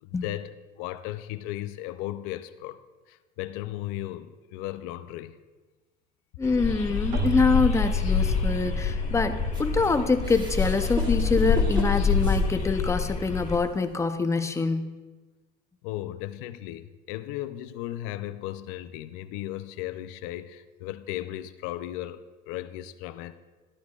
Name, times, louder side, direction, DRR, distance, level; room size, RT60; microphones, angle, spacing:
voice 1, 0.0-2.8 3.1-5.4 15.8-23.4, left 14 dB, 85° left, 11 dB, 0.5 m, -36 dB
sound 1, 6.4-13.6, left 5 dB, 40° left, 1.7 m, -26 dB
voice 2, 6.4-14.8, left 4 dB, 15° left, 8 dB, 0.6 m, -25 dB
Keyboard (musical), 7.1-11.6, right 11 dB, 90° right, 0.8 m, -37 dB
sound 2, 9.5-13.0 13.5-13.6 14.6-14.7, right 3 dB, 20° right, 1.3 m, -38 dB
12.0 x 11.5 x 2.4 m, 1.3 s
cardioid pair, 125°, 21 cm